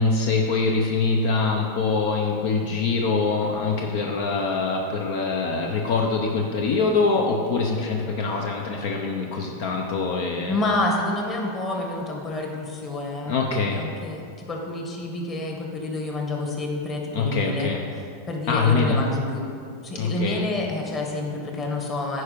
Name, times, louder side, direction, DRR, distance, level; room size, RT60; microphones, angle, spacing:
voice 1, 0.0-10.5 13.2-13.9 17.1-17.8 18.5-19.0 19.9-20.4, left 4 dB, 65° left, 1 dB, 0.8 m, -24 dB
voice 2, 10.5-13.4 13.7-14.2 14.5-17.7 18.3-19.4 19.8-22.2, left 2 dB, 30° left, 0 dB, 1.6 m, -28 dB
9.8 x 4.7 x 5.2 m, 2.4 s
hypercardioid pair, 125°, 0 cm